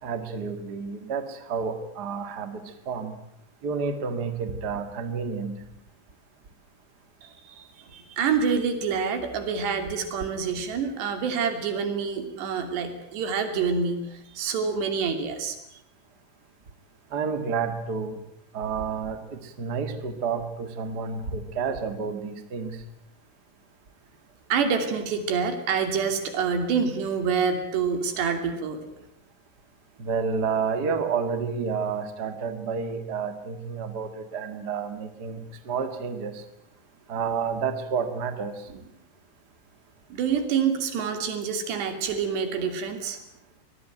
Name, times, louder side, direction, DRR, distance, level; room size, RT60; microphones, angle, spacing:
voice 1, 0.0-3.2 3.6-5.5 17.1-18.2 18.5-22.8 30.0-36.4 37.1-38.9, right 5 dB, 40° right, 8 dB, 1.6 m, -30 dB
voice 2, 7.2-15.6 24.5-28.8 40.1-43.2, right 6 dB, 80° right, 7 dB, 5.0 m, -27 dB
24.5 x 19.0 x 9.2 m, 0.81 s
omnidirectional pair, 4.8 m